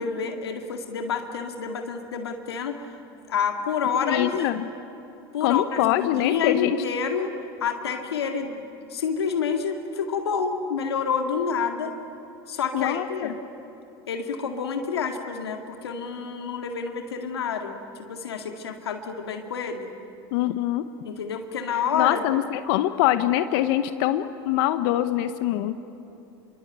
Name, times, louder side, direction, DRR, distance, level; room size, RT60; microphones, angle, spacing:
voice 1, 0.0-2.8 3.3-4.3 5.3-7.3 7.6-8.6 8.9-12.0 12.5-13.4 14.1-17.8 18.1-19.9 21.0-22.4, left 6 dB, 85° left, 4 dB, 2.1 m, -28 dB
voice 2, 4.0-4.7 5.4-6.8 12.7-13.3 20.3-20.8 21.9-25.7, left 14 dB, 65° left, 11 dB, 1.0 m, -24 dB
26.5 x 24.0 x 8.9 m, 3.0 s
hypercardioid pair, 85°, 13 cm